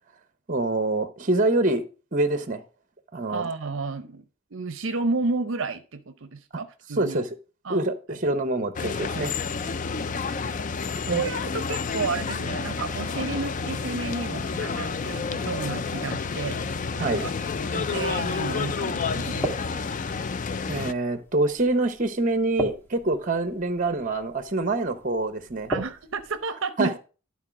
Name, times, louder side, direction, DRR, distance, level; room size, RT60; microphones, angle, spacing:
voice 1, 0.5-1.8 2.1-2.6 3.1-3.5 6.9-7.3 7.7-9.3 11.1-11.2 17.0-17.2 20.7-25.7 26.8-27.0, right 2 dB, 40° right, 0.9 m, -25 dB
voice 2, 3.3-4.2 4.5-7.2 7.6-7.8 9.7-9.8 11.0-16.6 17.0-17.3 17.6-19.5 25.7-27.0, right 3 dB, 65° right, 0.7 m, -31 dB
sound 1, 8.8-20.9, left 5 dB, 40° left, 0.4 m, -30 dB
sound 2, 17.3-26.5, right 2 dB, 10° left, 2.1 m, -38 dB
11.5 x 3.9 x 6.0 m
head